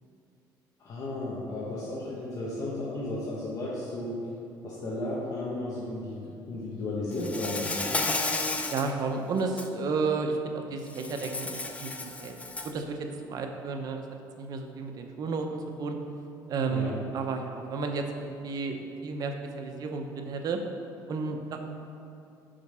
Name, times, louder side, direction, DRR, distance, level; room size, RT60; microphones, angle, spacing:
voice 1, 0.8-4.2 4.6-8.0 16.7-17.0, left 2 dB, 45° left, -7 dB, 1.0 m, -34 dB
Insect, 7.2-8.9 9.4-9.7 10.9-12.8, left 3 dB, 15° left, 0.5 m, -32 dB
voice 2, 8.7-12.4 12.6-14.0 14.4-16.0 16.5-20.6 21.1-21.6, right 4 dB, 50° right, 4 dB, 0.7 m, -32 dB
5.1 x 4.6 x 5.5 m, 2.7 s
cardioid pair, 120°, 8 cm